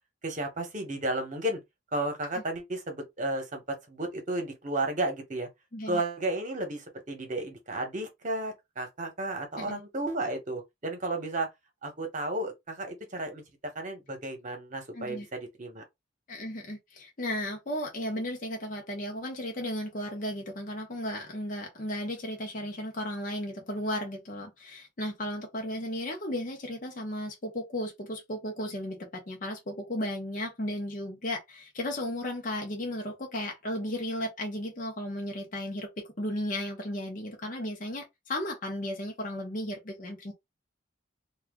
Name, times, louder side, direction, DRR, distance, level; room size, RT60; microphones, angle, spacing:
voice 1, 0.2-1.6 1.9-5.5 5.9-11.5 11.8-15.8, right 2 dB, 40° right, 1.0 m, -33 dB
voice 2, 14.9-15.3 16.3-40.3, left 1 dB, 40° left, 0.8 m, -35 dB
2.8 x 2.3 x 3.6 m
head